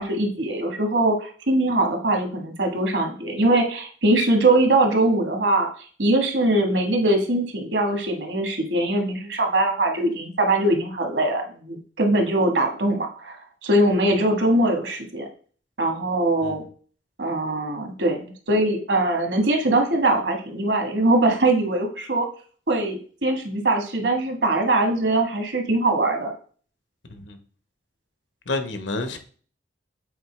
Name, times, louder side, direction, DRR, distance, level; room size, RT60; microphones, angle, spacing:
voice 1, 0.0-5.7 6.0-13.4 13.6-15.3 15.8-16.6 17.2-22.3 22.7-26.3, right 2 dB, 70° right, 1.4 m, -22 dB
voice 2, 28.5-29.2, left 2 dB, 80° left, 1.0 m, -29 dB
7.9 x 4.4 x 3.2 m
head